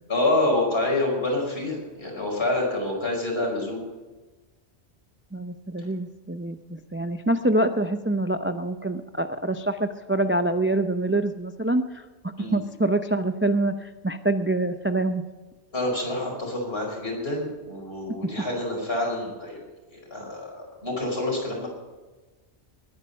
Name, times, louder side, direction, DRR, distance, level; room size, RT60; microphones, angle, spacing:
voice 1, 0.1-3.8 12.4-12.6 15.7-19.6 19.9-21.7, left 2 dB, 60° left, -1 dB, 5.4 m, -27 dB
voice 2, 5.3-12.0 12.4-15.2, right 2 dB, 15° right, 8 dB, 0.4 m, -25 dB
20.5 x 9.9 x 5.4 m, 1.2 s
omnidirectional pair, 1.2 m